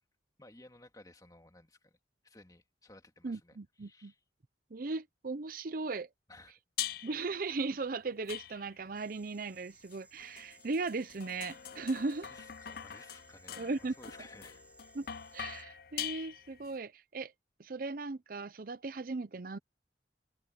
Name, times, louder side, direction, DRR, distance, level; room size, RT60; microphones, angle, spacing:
voice 1, 0.4-1.9 2.2-4.2 6.3-6.6 12.3-14.6, left 2 dB, 20° left, 2.8 m, -56 dB
voice 2, 3.2-4.1 4.7-6.1 7.0-12.3 13.6-13.9 14.9-15.1 15.3-17.3 17.6-19.6, right 3 dB, 50° right, 0.6 m, -37 dB
sound 1, 6.8-7.3 8.3-8.9 9.9-16.7, left 11 dB, 55° left, 0.5 m, -43 dB
sound 2, 8.9-15.6, right 2 dB, 10° right, 3.8 m, -62 dB
open air
head